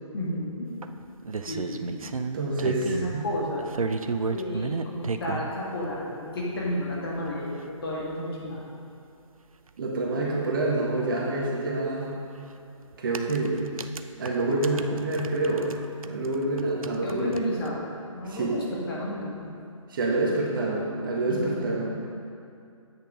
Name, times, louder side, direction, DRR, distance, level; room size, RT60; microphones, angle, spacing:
voice 1, 0.1-0.7 1.5-2.0 2.9-3.7 4.3-8.6 17.0-19.5 21.3-21.7, left 1 dB, 45° left, -4 dB, 2.1 m, -32 dB
sound 1, 0.8-3.2 3.6-5.5 6.4-6.5 6.9-7.0 7.3-7.4 7.6-7.7 9.7-9.8 10.0-10.1 12.1-12.3 12.9-15.8 16.0-17.7, right 4 dB, 85° right, 0.5 m, -33 dB
voice 2, 2.3-3.2 9.8-12.2 13.0-13.6 14.2-15.7 16.0-17.3 18.2-18.5 19.9-22.1, right 2 dB, 40° right, -3 dB, 1.5 m, -27 dB
8.8 x 6.5 x 5.1 m, 2.5 s
figure-of-eight pair, 145°, 17 cm